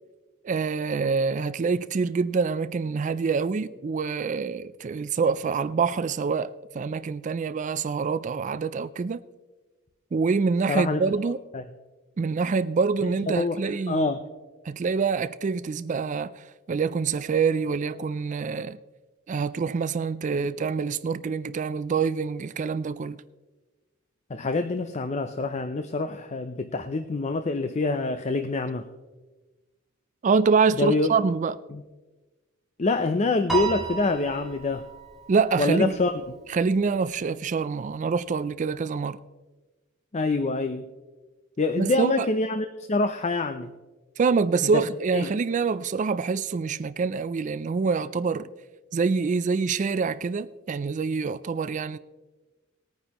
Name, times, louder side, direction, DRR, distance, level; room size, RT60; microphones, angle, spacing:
voice 1, 0.4-9.2 10.1-11.4 12.2-14.1 14.7-18.8 19.3-23.2 30.2-31.6 35.3-36.0 36.5-39.2 41.8-42.3 44.2-48.5 48.9-52.0, right 5 dB, 40° right, 0.3 m, -26 dB
voice 2, 10.7-11.0 11.5-11.6 13.3-13.6 13.9-14.2 20.3-20.5 24.3-28.9 30.8-31.1 31.7-31.8 32.8-34.9 35.6-36.1 40.1-40.9 41.6-43.7 44.7-44.8 45.1-45.3, left 3 dB, 35° left, 0.5 m, -26 dB
Piano, 33.5-36.0, right 6 dB, ahead, 2.2 m, -33 dB
19.5 x 9.4 x 3.0 m
head